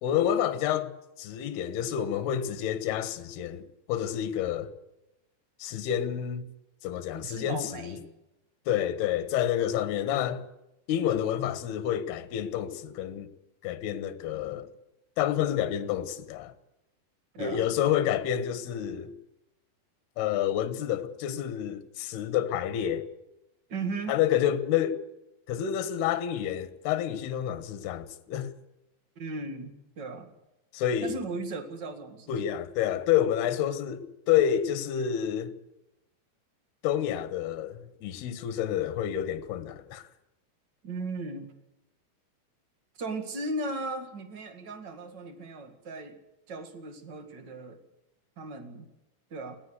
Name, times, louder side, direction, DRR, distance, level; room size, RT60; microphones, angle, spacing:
voice 1, 0.0-3.6 3.9-4.7 5.6-6.5 6.8-8.0 8.7-10.4 10.9-13.3 13.6-14.7 15.2-16.5 17.4-19.1 20.2-23.1 24.1-25.0 25.5-28.5 30.7-31.2 32.3-35.5 36.8-40.1, left 10 dB, 70° left, 3.1 m, -29 dB
voice 2, 7.1-8.1 17.3-17.7 23.7-24.2 29.1-30.3 31.0-32.3 40.8-41.5 43.0-46.2 46.5-47.8 48.4-48.9 49.3-49.5, right 2 dB, 45° right, 1.4 m, -37 dB
21.0 x 16.5 x 8.2 m
omnidirectional pair, 5.1 m